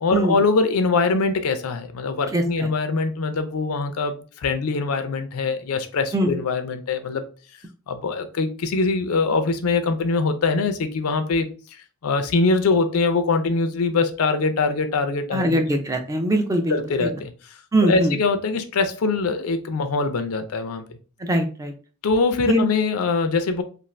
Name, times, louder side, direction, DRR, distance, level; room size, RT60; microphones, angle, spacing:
voice 1, 0.0-7.2 7.9-11.5 12.0-15.6 16.7-17.3 17.8-20.8 22.0-23.6, left 4 dB, 85° left, 0.5 m, -23 dB
voice 2, 2.3-2.7 6.1-6.4 15.3-17.1 17.7-18.2 21.2-21.7 22.5-22.7, right 1 dB, 15° right, 0.3 m, -22 dB
2.5 x 2.4 x 3.1 m
head